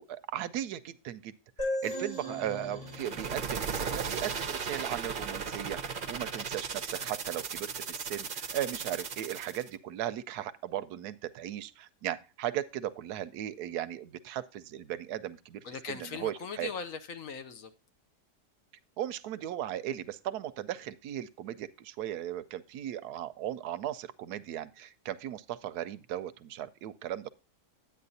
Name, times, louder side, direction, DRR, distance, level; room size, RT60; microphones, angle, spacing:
voice 1, 0.0-16.7 19.0-27.3, right 11 dB, 75° right, 1.1 m, -37 dB
sound 1, 1.6-5.1, equal, 25° left, 4.0 m, -39 dB
sound 2, 2.9-9.7, right 6 dB, 45° right, 0.7 m, -36 dB
voice 2, 15.6-17.7, left 6 dB, 60° left, 1.0 m, -39 dB
9.5 x 8.8 x 2.7 m
omnidirectional pair, 1.7 m